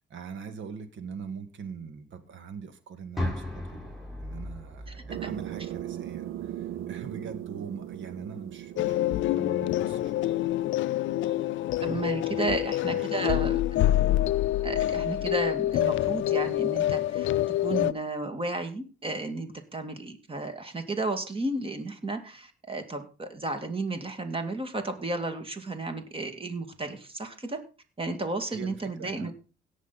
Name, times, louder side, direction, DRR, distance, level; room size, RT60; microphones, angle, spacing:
voice 1, 0.1-3.9 4.2-10.5 11.0-11.1 11.5-11.7 12.3-13.2 28.5-29.3, right 6 dB, 70° right, 9 dB, 2.0 m, -42 dB
sound 1, 3.2-7.1, left 1 dB, ahead, 5.7 m, -38 dB
sound 2, 5.1-12.3, right 12 dB, 90° right, 0.6 m, -40 dB
sound 3, 8.8-17.9, left 14 dB, 75° left, 0.5 m, -26 dB
voice 2, 11.8-13.6 14.6-17.3 17.6-27.6 28.0-29.3, right 2 dB, 25° right, 7 dB, 2.4 m, -33 dB
17.5 x 6.3 x 4.2 m, 0.34 s
cardioid pair, 90°, 20 cm